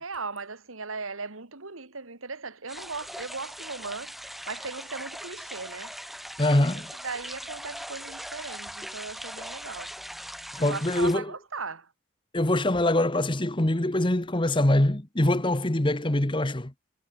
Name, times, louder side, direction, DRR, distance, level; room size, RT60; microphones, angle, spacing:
voice 1, 0.0-4.2 4.5-5.9 6.7-9.9 10.6-11.9, right 4 dB, 85° right, 2.6 m, -38 dB
sound 1, 2.7-11.2, equal, ahead, 1.4 m, -40 dB
voice 2, 6.4-6.9 10.5-11.2 12.3-16.7, left 1 dB, 25° left, 1.1 m, -24 dB
head